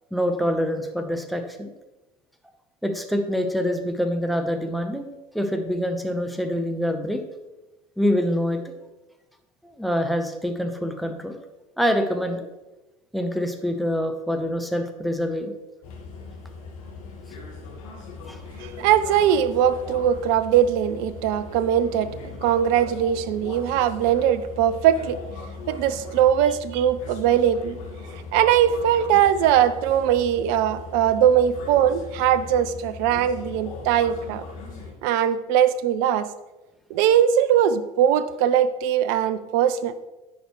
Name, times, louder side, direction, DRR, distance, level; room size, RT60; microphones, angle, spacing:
voice 1, 0.1-1.7 2.8-5.1 5.3-7.2 8.0-8.6 9.6-11.4 11.8-12.5 13.1-15.5 18.3-18.4, equal, ahead, 7 dB, 0.8 m, -25 dB
sound 1, 15.8-34.9, left 4 dB, 60° left, 1.4 m, -39 dB
voice 2, 18.6-22.1 22.4-25.2 25.7-27.8 28.3-34.4 35.0-36.3 36.9-40.1, right 9 dB, 55° right, 14 dB, 0.5 m, -21 dB
10.5 x 5.1 x 3.0 m, 1.1 s
figure-of-eight pair, 70°, 19 cm